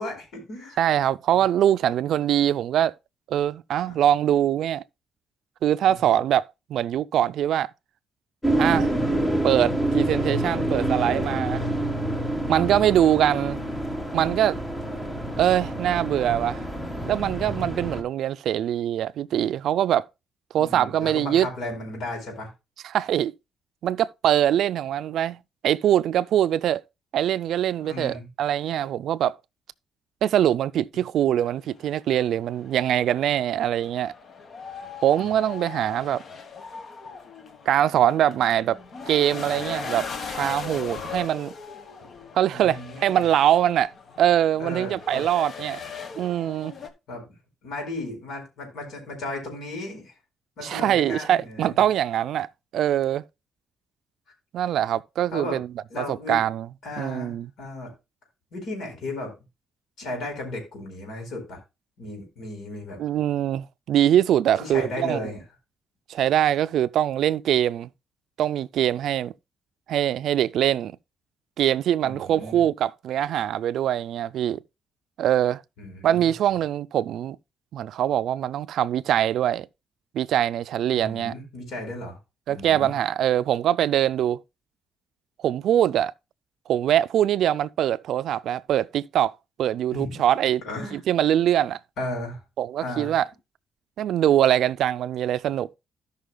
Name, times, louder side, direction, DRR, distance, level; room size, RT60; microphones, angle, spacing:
voice 1, 0.0-0.8 3.9-4.0 5.9-6.1 17.6-17.9 20.6-22.5 27.8-28.3 35.2-35.4 42.5-43.2 44.6-45.2 47.1-47.3 47.6-50.1 50.6-51.8 55.3-55.6 55.9-56.4 56.8-57.9 58.5-59.3 60.0-61.6 62.0-63.0 64.6-65.4 72.0-72.6 75.8-76.3 81.0-82.2 82.5-83.0 89.9-90.2 90.7-91.0 92.0-92.4 92.8-93.1, left 2 dB, 70° left, 4.3 m, -35 dB
voice 2, 0.8-2.9 3.3-4.8 5.6-7.7 8.6-8.9 9.4-11.7 12.5-13.6 14.1-14.6 15.4-16.6 17.1-20.1 20.5-21.5 22.8-23.3 23.8-25.4 25.6-26.8 27.1-29.3 30.2-34.1 35.0-36.2 37.7-38.8 39.1-41.5 42.3-43.9 44.2-45.8 46.2-46.7 50.6-52.5 52.7-53.2 54.5-55.7 56.0-56.7 57.0-57.5 63.0-65.2 66.1-67.9 68.4-69.3 69.9-71.0 71.6-74.6 75.2-75.6 76.0-77.4 77.7-79.7 80.1-81.3 82.5-84.4 85.4-86.1 86.7-89.3 89.6-90.6 90.9-91.8 92.6-93.2 94.0-95.8, right 11 dB, 70° right, 0.3 m, -23 dB
sound 1, 8.4-18.0, right 1 dB, 10° left, 1.4 m, -27 dB
sound 2, 31.4-46.9, left 5 dB, 45° left, 1.2 m, -39 dB
16.5 x 5.6 x 2.2 m
cardioid pair, 130°, 0 cm